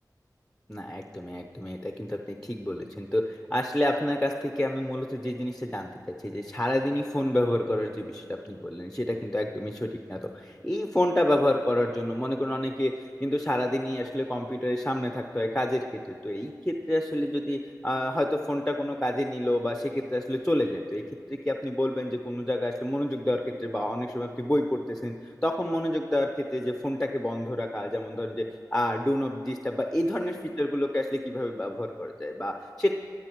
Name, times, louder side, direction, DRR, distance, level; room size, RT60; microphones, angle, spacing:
voice 1, 0.7-5.9 6.2-12.9 13.2-21.0 21.3-25.1 25.4-28.5 28.7-32.9, left 1 dB, 10° left, 4 dB, 0.7 m, -28 dB
22.0 x 8.7 x 4.6 m, 2.4 s
wide cardioid pair, 45°, 7 cm